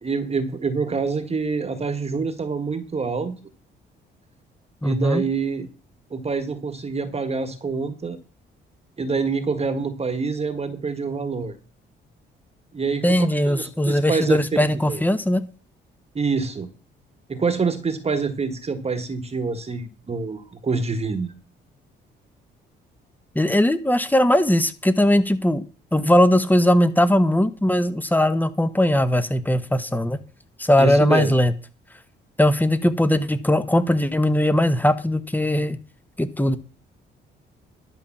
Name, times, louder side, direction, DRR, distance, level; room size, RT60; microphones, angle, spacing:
voice 1, 0.0-3.4 4.8-5.7 6.1-8.2 9.0-11.5 12.7-15.0 16.1-16.7 17.3-21.3 30.8-31.3, right 4 dB, 30° right, 10 dB, 1.5 m, -26 dB
voice 2, 4.8-5.2 13.0-15.4 23.3-25.6 25.9-30.2 30.6-31.5 32.4-35.8 36.2-36.6, left 1 dB, 10° left, 13 dB, 1.3 m, -19 dB
11.5 x 5.3 x 7.2 m, 0.37 s
cardioid pair, 90°, 20 cm